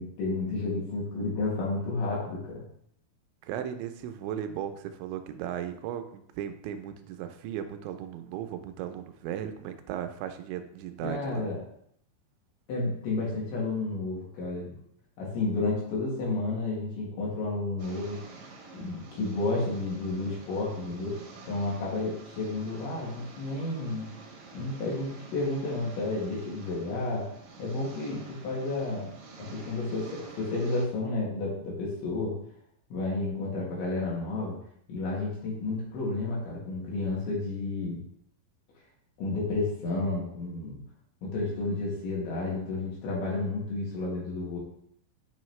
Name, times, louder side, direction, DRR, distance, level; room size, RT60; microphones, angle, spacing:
voice 1, 0.0-2.6 11.0-11.6 12.7-14.8 15.2-18.2 18.7-24.1 24.5-27.3 27.6-29.1 29.4-32.3 32.9-34.6 34.9-38.0 39.2-40.8 41.2-44.6, left 2 dB, 80° left, -5 dB, 4.5 m, -31 dB
voice 2, 3.4-11.5, right 10 dB, 85° right, 8 dB, 2.9 m, -36 dB
sound 1, 17.8-30.8, right 3 dB, 65° right, 1.9 m, -48 dB
8.5 x 5.5 x 3.1 m, 0.69 s
omnidirectional pair, 5.2 m